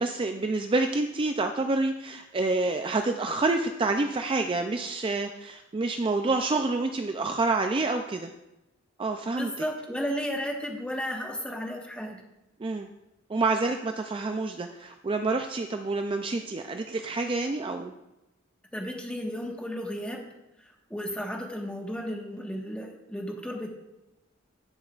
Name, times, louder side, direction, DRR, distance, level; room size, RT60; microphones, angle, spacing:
voice 1, 0.0-8.3 9.0-9.5 12.6-12.9 13.3-17.9, right 3 dB, 25° right, 5 dB, 0.4 m, -28 dB
voice 2, 9.4-12.2 18.7-20.2 20.6-23.7, equal, 5° left, 0 dB, 1.4 m, -34 dB
19.5 x 6.9 x 2.4 m, 0.94 s
head